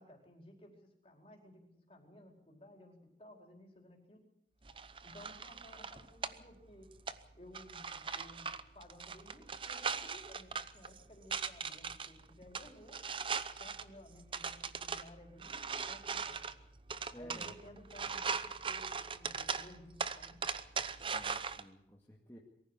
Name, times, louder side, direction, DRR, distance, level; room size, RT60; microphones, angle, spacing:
voice 1, 0.0-4.2 5.0-6.9 7.3-13.0 13.6-16.4 17.1-20.4, left 1 dB, 30° left, 2 dB, 4.7 m, -56 dB
sound 1, 4.6-21.6, right 5 dB, 30° right, 0.8 m, -41 dB
voice 2, 17.1-17.5 21.0-22.4, equal, 15° left, -3 dB, 2.3 m, -53 dB
23.0 x 15.0 x 8.3 m, 0.77 s
head